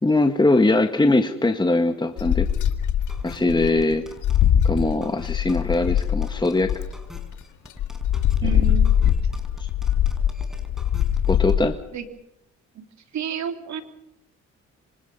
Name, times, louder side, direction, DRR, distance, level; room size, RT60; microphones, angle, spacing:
voice 1, 0.0-2.5 3.2-4.0 4.6-6.7 8.4-8.6 9.6-9.7 11.3-11.7, left 2 dB, 15° left, 7 dB, 1.7 m, -21 dB
sound 1, 2.2-7.3 7.8-11.6, left 9 dB, 80° left, 2.2 m, -22 dB
sound 2, 3.1-11.6, left 1 dB, ahead, 5.5 m, -45 dB
voice 2, 8.4-9.1 11.9-12.0 12.7-12.8 13.1-13.8, right 7 dB, 65° right, 7 dB, 3.3 m, -31 dB
26.5 x 26.0 x 5.5 m, 0.78 s
cardioid pair, 90°, 30 cm